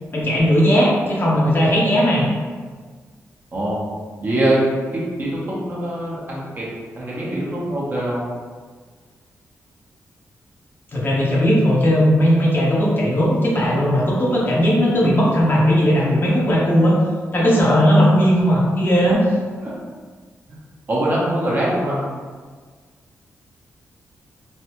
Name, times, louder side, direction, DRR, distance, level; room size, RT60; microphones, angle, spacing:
voice 1, 0.1-2.3 10.9-17.0 17.3-19.2, equal, 40° left, -5 dB, 0.8 m, -17 dB
voice 2, 3.5-3.8 4.2-4.6 4.9-6.7 6.9-8.2 19.6-19.7 20.9-22.0, right 1 dB, 40° right, -6 dB, 0.9 m, -23 dB
3.2 x 2.2 x 2.9 m, 1.5 s
cardioid pair, 90°, 5 cm